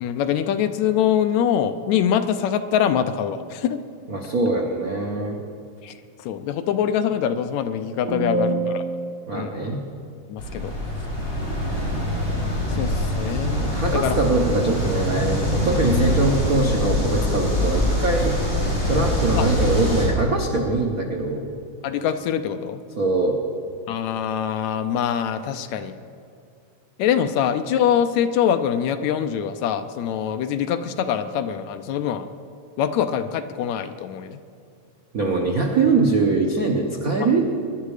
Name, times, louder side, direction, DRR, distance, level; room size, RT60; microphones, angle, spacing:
voice 1, 0.0-3.8 5.8-8.8 9.3-9.8 10.3-10.7 12.7-14.3 19.4-19.5 21.8-22.8 23.9-25.9 27.0-32.3 32.8-34.4, left 9 dB, 75° left, 9 dB, 1.9 m, -24 dB
voice 2, 4.1-5.4 8.0-9.8 13.6-18.4 18.9-21.5 23.0-23.4 35.1-37.5, right 3 dB, 75° right, 0 dB, 0.8 m, -22 dB
sound 1, 10.4-20.1, left 1 dB, 55° left, 5.8 m, -24 dB
21.5 x 11.0 x 4.9 m, 2.4 s
omnidirectional pair, 3.4 m